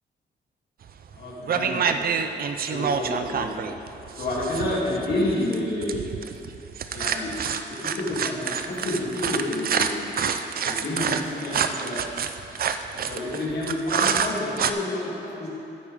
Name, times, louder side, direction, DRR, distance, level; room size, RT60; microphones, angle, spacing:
sound 1, 0.9-1.2 1.5-14.7, right 7 dB, 50° right, 0.4 m, -27 dB
voice 1, 1.1-2.2 2.6-3.6 4.1-6.0 6.9-7.3 8.0-10.2 10.6-12.0 12.9-15.5, left 1 dB, 55° left, -7 dB, 2.8 m, -29 dB
13.5 x 9.7 x 3.6 m, 3.0 s
wide cardioid pair, 165°, 19 cm